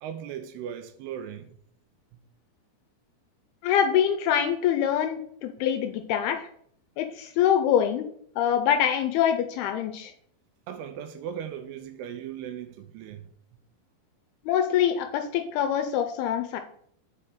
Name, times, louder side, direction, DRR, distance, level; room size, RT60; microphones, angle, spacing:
voice 1, 0.0-1.6 10.7-13.3, right 9 dB, 80° right, 2.5 m, -38 dB
voice 2, 3.6-6.5 7.0-8.1 8.4-10.1 14.5-16.6, left 9 dB, 80° left, 2.3 m, -24 dB
5.6 x 5.4 x 4.9 m
omnidirectional pair, 4.9 m